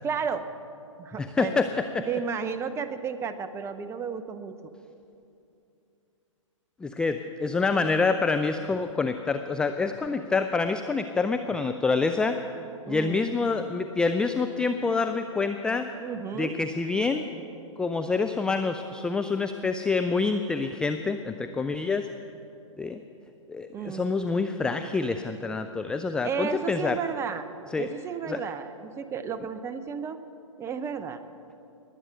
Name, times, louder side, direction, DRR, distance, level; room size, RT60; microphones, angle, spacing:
voice 1, 0.0-0.5 1.0-1.6 2.1-4.5 12.9-13.2 16.0-16.6 23.7-24.0 26.2-27.5 27.8-30.2 30.6-31.2, right 6 dB, 15° right, 12 dB, 0.7 m, -32 dB
voice 2, 1.2-2.1 6.8-12.4 12.9-15.9 16.4-17.3 17.8-22.1 22.8-23.0 23.5-27.0 27.7-27.9 28.3-28.4, left 4 dB, 5° left, 8 dB, 0.3 m, -27 dB
21.5 x 8.8 x 6.7 m, 2.7 s
figure-of-eight pair, 120°, 17 cm